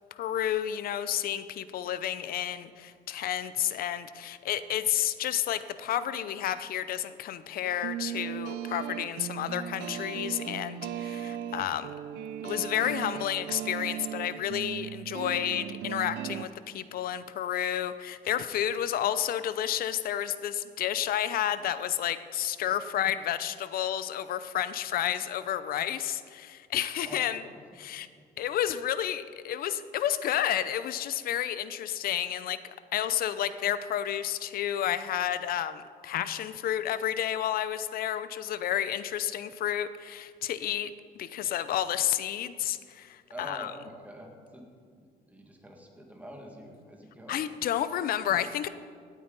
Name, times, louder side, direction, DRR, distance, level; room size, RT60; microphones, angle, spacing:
voice 1, 0.1-11.9 12.4-27.4 27.7-28.1 28.4-40.9 41.2-43.7 47.3-48.7, left 11 dB, 60° left, 14 dB, 0.6 m, -31 dB
sound 1, 7.6-16.4, right 10 dB, 80° right, 0.5 m, -37 dB
voice 2, 28.0-28.3 43.3-44.7 45.0-47.4, equal, 10° right, 1 dB, 2.1 m, -46 dB
17.0 x 9.1 x 4.1 m, 2.1 s
cardioid pair, 110°, 17 cm